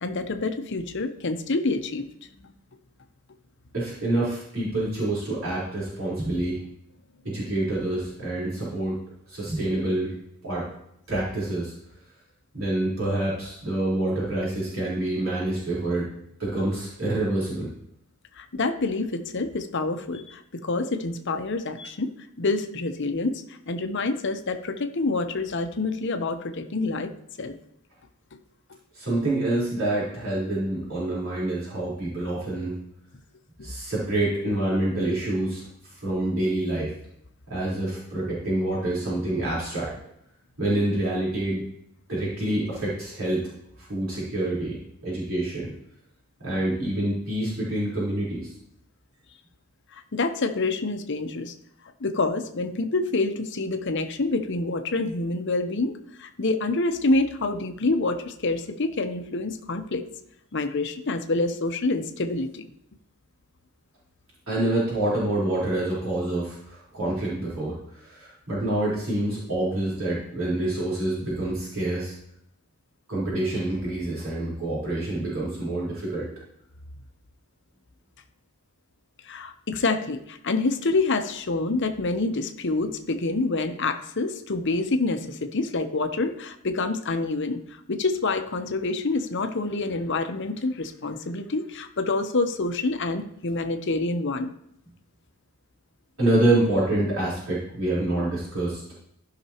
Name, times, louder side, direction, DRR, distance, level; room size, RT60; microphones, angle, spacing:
voice 1, 0.0-2.1 2.3-2.6 18.4-27.1 27.4-27.5 49.9-51.5 52.0-60.0 60.5-62.6 79.2-94.5, left 3 dB, 55° left, 7 dB, 0.8 m, -27 dB
voice 2, 3.7-6.6 7.2-9.0 9.3-10.2 10.4-10.7 11.1-11.7 12.5-16.1 16.4-17.7 28.9-32.8 33.6-36.9 37.5-39.9 40.6-41.6 42.1-43.5 43.8-44.8 45.0-45.7 46.4-48.5 64.5-72.1 73.1-76.3 96.2-98.8, right 1 dB, 65° right, -8 dB, 4.0 m, -27 dB
14.5 x 5.9 x 2.9 m, 0.76 s
head